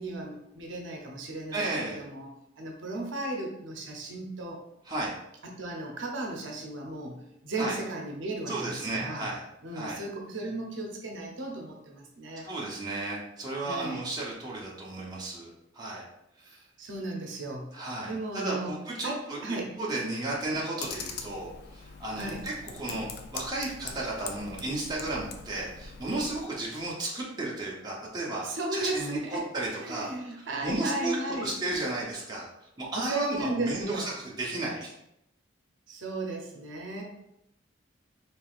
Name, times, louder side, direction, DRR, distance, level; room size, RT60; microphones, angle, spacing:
voice 1, 0.0-2.3 2.6-4.6 5.4-9.3 9.6-12.5 13.6-14.0 16.8-18.7 19.0-19.8 22.1-22.4 28.4-29.4 29.8-31.6 32.9-34.2 35.9-37.0, right 2 dB, 70° right, 0 dB, 0.7 m, -35 dB
voice 2, 1.5-2.0 4.9-5.1 7.6-7.8 8.5-9.4 9.7-10.0 12.4-16.1 16.4-16.6 17.7-19.4 19.8-30.1 30.4-32.5 32.8-34.9, right 2 dB, 20° right, -5 dB, 0.8 m, -34 dB
Computer keyboard, 20.8-26.4, left 5 dB, 50° left, 0.4 m, -42 dB
4.6 x 3.2 x 2.5 m, 0.83 s
head